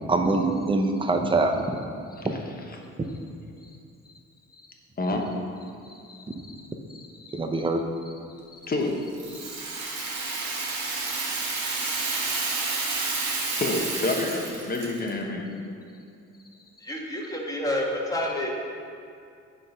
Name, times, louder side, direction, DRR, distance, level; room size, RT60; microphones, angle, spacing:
voice 1, 0.1-1.6 2.2-2.3 6.3-6.4 7.3-7.8, right 3 dB, 15° right, 4 dB, 0.7 m, -24 dB
Rattle (instrument), 9.1-15.1, right 3 dB, 80° right, 1.7 m, -30 dB
voice 2, 13.4-15.4, left 2 dB, 30° left, 1 dB, 1.1 m, -29 dB
voice 3, 16.8-18.5, left 1 dB, 10° left, -2 dB, 1.4 m, -29 dB
9.6 x 3.8 x 5.2 m, 2.4 s
cardioid pair, 90°, 30 cm